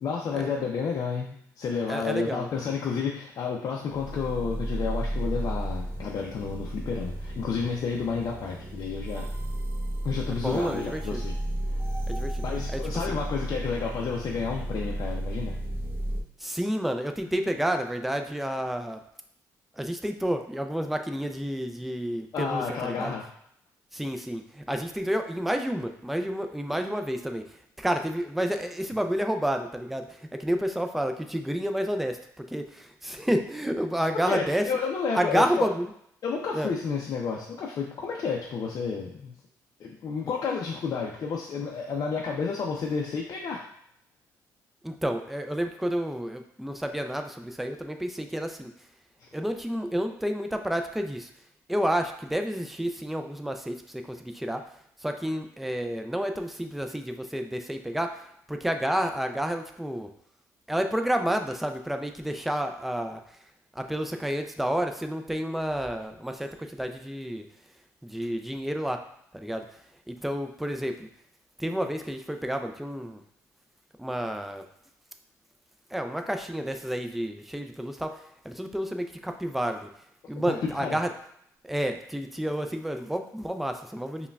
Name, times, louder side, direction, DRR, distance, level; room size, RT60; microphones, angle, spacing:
voice 1, 0.0-9.3 10.0-11.4 12.4-15.6 22.3-23.3 34.3-35.7 36.2-39.3 39.8-43.6 80.5-80.6 80.8-81.0, left 5 dB, 55° left, -2 dB, 0.5 m, -31 dB
voice 2, 1.9-2.5 10.3-11.2 12.1-12.4 12.7-13.2 16.4-19.0 19.8-23.2 23.9-27.4 27.8-34.7 35.1-35.9 36.5-36.7 44.8-48.7 49.3-51.3 51.7-54.6 55.0-58.2 58.5-60.1 60.7-63.2 63.8-67.5 68.0-69.0 69.3-69.7 70.1-71.1 71.6-73.2 74.0-74.6 75.9-79.9 80.3-81.1 81.6-84.3, equal, ahead, 5 dB, 0.4 m, -30 dB
sound 1, 3.9-16.2, right 1 dB, 30° right, 0.8 m, -33 dB
5.3 x 2.3 x 2.3 m, 0.71 s
supercardioid pair, 65°, 7 cm